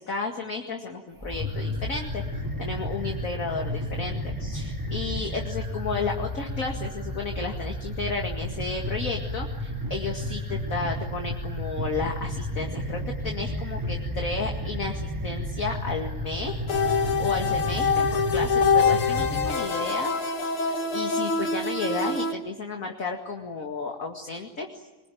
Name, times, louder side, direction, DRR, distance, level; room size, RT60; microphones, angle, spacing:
voice 1, 0.0-2.2 2.6-16.6 17.2-20.1 20.7-24.7, left 4 dB, 40° left, 3 dB, 2.4 m, -33 dB
sound 1, 1.2-19.5, equal, 10° right, 2.4 m, -32 dB
sound 2, 16.7-22.3, left 5 dB, 85° left, 2.8 m, -25 dB
26.0 x 21.0 x 9.3 m, 1.1 s
omnidirectional pair, 2.3 m